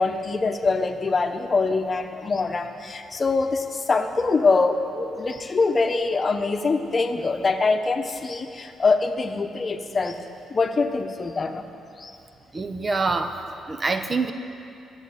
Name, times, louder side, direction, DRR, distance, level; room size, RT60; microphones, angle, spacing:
voice 1, 0.0-10.2 10.5-11.6 12.0-12.1, left 3 dB, 40° left, 6 dB, 1.0 m, -24 dB
voice 2, 12.5-14.3, right 3 dB, 35° right, 8 dB, 0.8 m, -26 dB
13.5 x 7.3 x 9.4 m, 2.7 s
cardioid pair, 70°, 0 cm